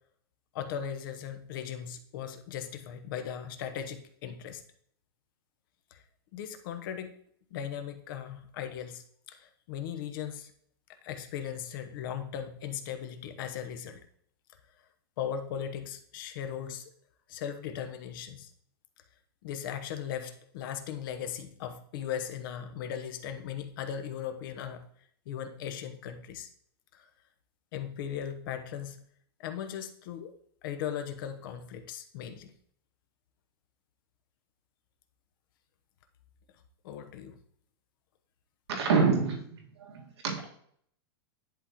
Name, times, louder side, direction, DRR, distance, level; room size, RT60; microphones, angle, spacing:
voice 1, 0.5-4.6 5.9-6.0 6.3-7.1 7.5-10.5 11.0-14.0 15.2-16.9 17.3-18.5 19.4-24.9 25.3-26.5 26.9-27.1 27.7-29.1 29.4-30.3 30.6-32.5 36.8-37.4, left 9 dB, 55° left, 7 dB, 0.9 m, -38 dB
voice 2, 38.7-39.4 39.8-40.5, right 5 dB, 85° right, 1 dB, 1.7 m, -27 dB
10.5 x 3.6 x 2.9 m, 0.64 s
supercardioid pair, 150°, 13 cm